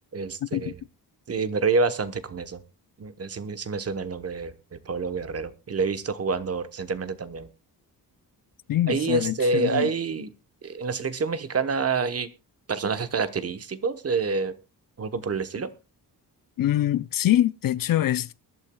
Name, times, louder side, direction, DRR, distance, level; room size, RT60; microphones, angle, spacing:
voice 1, 0.1-0.8 1.3-2.6 3.0-7.5 8.9-10.3 10.6-12.3 12.7-14.5 15.0-15.7, right 4 dB, 40° right, 1.1 m, -27 dB
voice 2, 8.7-9.9 16.6-18.3, left 13 dB, 60° left, 0.6 m, -24 dB
22.5 x 11.5 x 2.3 m
wide cardioid pair, 135°, 39 cm